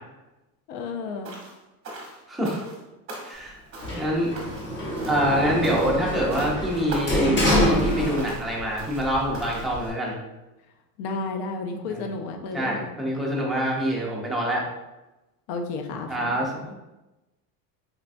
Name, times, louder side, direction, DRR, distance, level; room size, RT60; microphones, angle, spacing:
voice 1, 0.7-1.3 4.1-4.3 11.0-12.9 15.5-16.7, left 3 dB, 65° left, 5 dB, 0.5 m, -32 dB
sound 1, 1.2-1.6 1.8-2.8 3.1-3.5 3.7-4.1 4.4-4.7 5.0-5.3 5.6-6.0 6.3-6.6 6.9-7.2 7.5-7.9 8.2-8.5 8.8-9.1 9.3-9.7, right 2 dB, 30° right, 0.8 m, -40 dB
voice 2, 2.3-2.6 3.2-3.6 3.9-4.4 5.1-10.2 11.9-12.0 12.5-14.6 16.1-16.7, equal, ahead, -5 dB, 0.4 m, -25 dB
Sliding door, 3.8-8.6 9.0-9.9, equal, 25° left, 0.8 m, -26 dB
4.1 x 2.1 x 2.5 m, 1.0 s
supercardioid pair, 130°, 44 cm